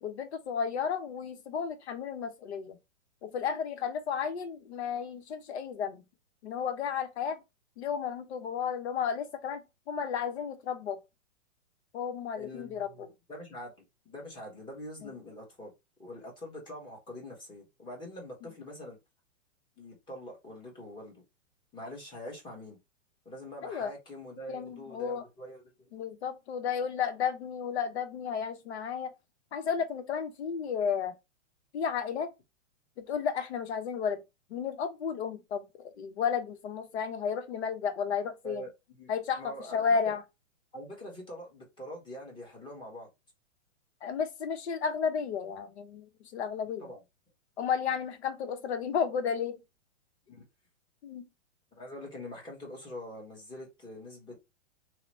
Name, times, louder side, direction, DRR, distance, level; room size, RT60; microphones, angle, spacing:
voice 1, 0.0-2.8 3.2-6.0 6.4-7.4 7.8-11.0 11.9-13.1 23.6-23.9 24.5-25.2 25.9-29.1 29.5-31.1 31.7-32.3 33.0-34.2 34.5-38.7 39.1-40.2 44.0-46.1 46.3-46.9 47.6-49.6 51.0-51.3, left 7 dB, 60° left, 0.9 m, -33 dB
voice 2, 12.3-15.7 16.0-19.0 19.8-21.2 21.7-22.8 23.2-25.9 38.4-39.1 39.4-40.1 40.7-43.1 46.8-47.0 50.3-50.4 51.8-54.4, left 1 dB, 10° left, 1.0 m, -44 dB
3.0 x 2.1 x 4.0 m
hypercardioid pair, 140°, 38 cm